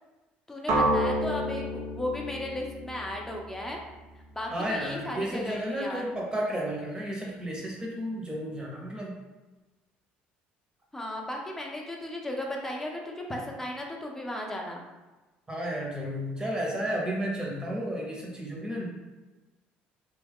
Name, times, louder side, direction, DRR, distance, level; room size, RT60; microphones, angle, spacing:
voice 1, 0.5-3.8 4.3-6.1 10.9-14.8, left 1 dB, 10° left, 0 dB, 0.7 m, -35 dB
sound 1, 0.7-4.6, equal, 65° right, 0.8 m, -30 dB
voice 2, 4.5-9.2 15.5-18.9, equal, 20° right, -2 dB, 1.0 m, -32 dB
2.9 x 2.4 x 3.5 m, 1.2 s
supercardioid pair, 75°, 4 cm